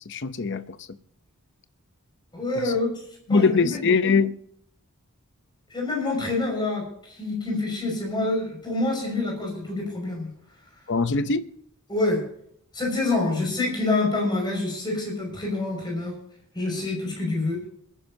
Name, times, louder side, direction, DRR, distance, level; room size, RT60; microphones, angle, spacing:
voice 1, 0.1-0.6 3.3-4.3 10.9-11.5, left 4 dB, 55° left, 0.7 m, -21 dB
voice 2, 2.3-2.9 3.3-3.8 5.7-10.3 11.9-12.2 12.7-16.2 16.5-17.6, left 2 dB, 20° left, 5.8 m, -26 dB
26.0 x 10.5 x 2.8 m
head